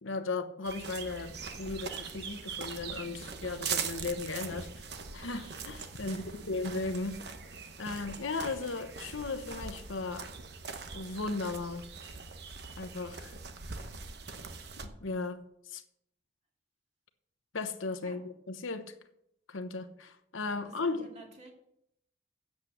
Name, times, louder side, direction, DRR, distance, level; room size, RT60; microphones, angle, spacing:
voice 1, 0.0-4.7 5.1-7.2 7.8-10.3 10.9-11.9 12.8-13.4 15.0-15.8 17.5-18.9 19.5-21.1, left 3 dB, 85° left, 1.0 m, -36 dB
sound 1, 0.6-14.9, right 5 dB, 55° right, 0.9 m, -42 dB
voice 2, 6.0-6.4 18.0-18.2 20.6-21.5, right 2 dB, 35° right, 2.4 m, -53 dB
8.5 x 8.1 x 6.4 m
head